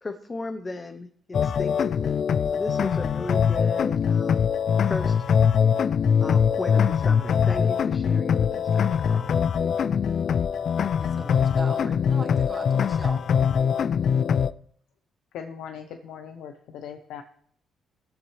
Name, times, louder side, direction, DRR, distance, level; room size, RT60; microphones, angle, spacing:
voice 1, 0.0-2.2 2.5-4.4 4.9-5.1 6.2-9.4, left 3 dB, 25° left, 8 dB, 0.8 m, -35 dB
sound 1, 1.3-14.5, left 7 dB, 55° left, 0.3 m, -22 dB
voice 2, 10.8-13.2, right 2 dB, 20° right, 3 dB, 1.8 m, -39 dB
voice 3, 15.3-17.2, left 7 dB, 85° left, 7 dB, 0.8 m, -39 dB
19.5 x 7.1 x 3.2 m, 0.63 s
cardioid pair, 90°, 0 cm